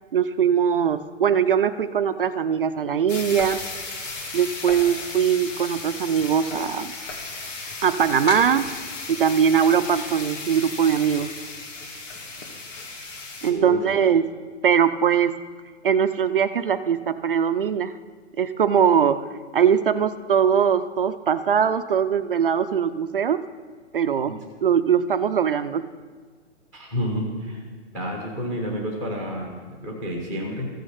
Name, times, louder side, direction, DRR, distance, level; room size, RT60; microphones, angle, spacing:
voice 1, 0.1-3.6 4.3-6.9 7.8-8.7 9.1-11.3 13.4-14.3 14.6-15.4 15.8-17.9 18.4-19.3 19.5-23.4 23.9-25.9, right 7 dB, 50° right, 11 dB, 0.5 m, -21 dB
sound 1, 3.1-13.5, left 3 dB, 80° left, 2.7 m, -35 dB
voice 2, 13.5-14.1 24.3-24.4 26.7-27.6 27.9-30.7, equal, 10° left, 0 dB, 0.9 m, -30 dB
14.0 x 6.5 x 7.8 m, 1.5 s
hypercardioid pair, 165°, 37 cm